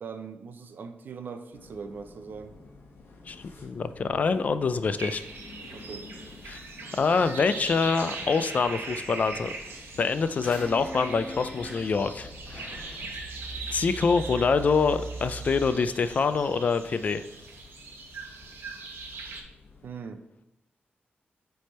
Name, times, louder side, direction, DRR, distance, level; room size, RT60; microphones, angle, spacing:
voice 1, 0.0-2.6 5.7-6.1 19.8-20.2, right 5 dB, 60° right, 9 dB, 0.5 m, -40 dB
sound 1, 1.5-19.9, left 3 dB, 75° left, 1.0 m, -50 dB
voice 2, 3.6-5.2 6.5-6.6 6.9-9.5 10.0-13.1 13.7-17.2, left 5 dB, 45° left, 12 dB, 0.3 m, -25 dB
sound 2, 5.0-19.4, right 4 dB, 85° right, 0.9 m, -41 dB
sound 3, 10.4-15.7, right 1 dB, ahead, 2.4 m, -40 dB
7.5 x 3.4 x 4.2 m, 0.91 s
wide cardioid pair, 165°, 4 cm